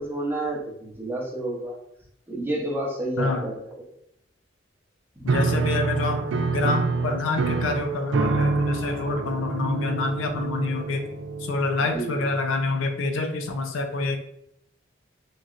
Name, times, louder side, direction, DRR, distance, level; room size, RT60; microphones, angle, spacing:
voice 1, 0.0-1.7 2.3-3.8 5.2-5.3 11.9-12.3, right 1 dB, 10° right, -4 dB, 0.7 m, -30 dB
voice 2, 5.2-11.1 11.4-14.2, left 3 dB, 85° left, 5 dB, 0.5 m, -27 dB
Piano, 5.3-12.1, right 3 dB, 70° right, 0.3 m, -27 dB
3.0 x 2.6 x 2.4 m, 0.73 s
head